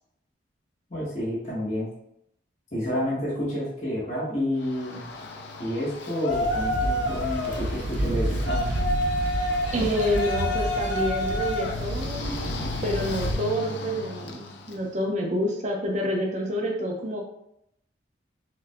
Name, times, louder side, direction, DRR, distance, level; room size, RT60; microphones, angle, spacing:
voice 1, 0.9-1.9 2.7-5.1 5.6-8.7, equal, 40° left, -9 dB, 1.4 m, -29 dB
Yell, 4.6-14.8, left 1 dB, 70° left, 0.5 m, -31 dB
sound 1, 6.3-13.3, right 1 dB, 75° right, 0.5 m, -30 dB
voice 2, 9.7-17.2, equal, 40° right, 0 dB, 0.7 m, -28 dB
5.7 x 2.5 x 2.2 m, 0.77 s
head